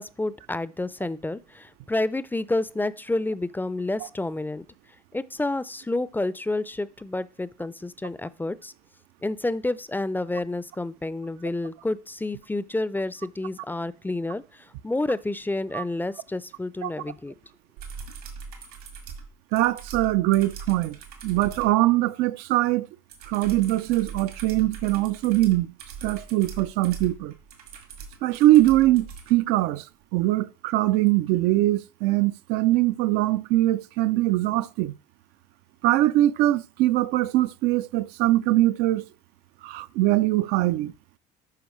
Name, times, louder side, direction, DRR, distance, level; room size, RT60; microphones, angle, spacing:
voice 1, 0.0-4.7 5.1-8.7 9.2-17.3, left 2 dB, 10° left, 0.5 m, -29 dB
sound 1, 17.8-21.7 23.1-29.3 31.1-31.2, right 5 dB, 75° right, 1.9 m, -41 dB
voice 2, 19.5-21.0 21.2-22.9 23.3-25.7 26.0-27.3 28.2-29.9 30.1-34.9 35.8-39.1 39.6-40.9, right 16 dB, 60° right, 0.5 m, -22 dB
11.5 x 4.7 x 3.2 m
figure-of-eight pair, 55°, 20 cm